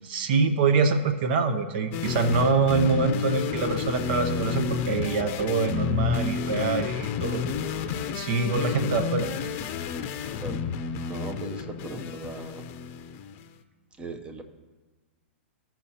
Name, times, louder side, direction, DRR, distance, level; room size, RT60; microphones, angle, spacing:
voice 1, 0.0-7.6 8.1-9.4, right 4 dB, 55° right, 9 dB, 0.7 m, -25 dB
sound 1, 1.9-13.4, left 6 dB, 40° left, 0.7 m, -30 dB
voice 2, 10.3-10.6 11.1-12.6 14.0-14.4, right 3 dB, 15° right, 6 dB, 0.8 m, -38 dB
15.0 x 5.8 x 2.9 m, 1.3 s
hypercardioid pair, 125°, 7 cm